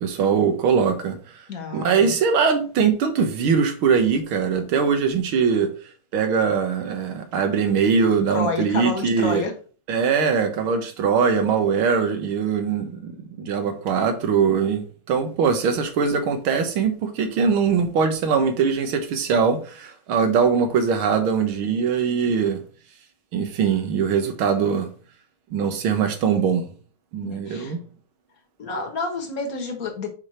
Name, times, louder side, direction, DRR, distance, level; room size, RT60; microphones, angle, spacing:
voice 1, 0.0-1.2 1.7-5.7 6.1-9.4 9.9-14.8 15.1-22.6 23.3-24.9 25.5-26.7 27.1-27.8, right 6 dB, 85° right, 2.0 m, -21 dB
voice 2, 1.5-2.2 8.3-9.5 27.2-27.7 28.6-30.1, left 3 dB, 45° left, 1.7 m, -29 dB
6.4 x 5.0 x 4.3 m
omnidirectional pair, 2.2 m